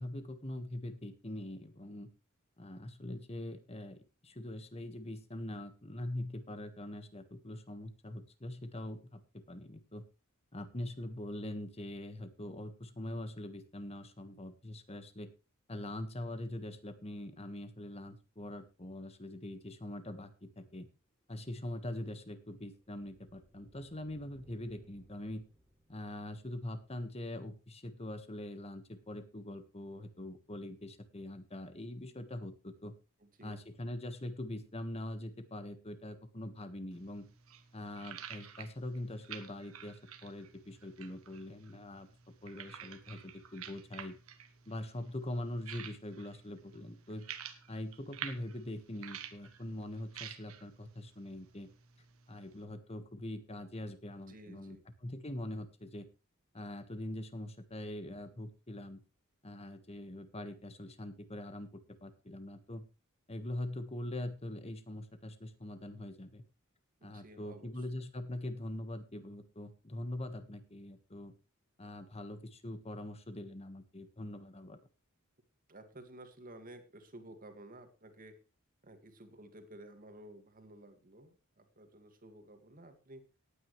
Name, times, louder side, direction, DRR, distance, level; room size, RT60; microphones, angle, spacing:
voice 1, 0.0-2.1 2.6-9.2 9.5-10.0 10.5-15.3 15.7-20.9 21.3-25.4 25.9-32.9 33.4-37.3 37.7-42.1 42.4-44.1 44.7-47.2 47.7-51.7 52.3-54.8 55.0-56.1 56.5-59.0 59.4-62.8 63.3-66.4 67.0-71.3 71.8-74.8, left 1 dB, 30° left, 9 dB, 1.5 m, -43 dB
sound 1, 21.1-26.7, equal, 5° left, 3.9 m, -65 dB
voice 2, 33.2-33.6 54.3-54.8 67.0-67.7 75.7-78.4 78.8-83.2, right 1 dB, 40° right, 7 dB, 2.1 m, -53 dB
sound 2, 36.9-52.6, right 8 dB, 85° right, 1.4 m, -50 dB
18.0 x 9.3 x 3.2 m, 0.31 s
head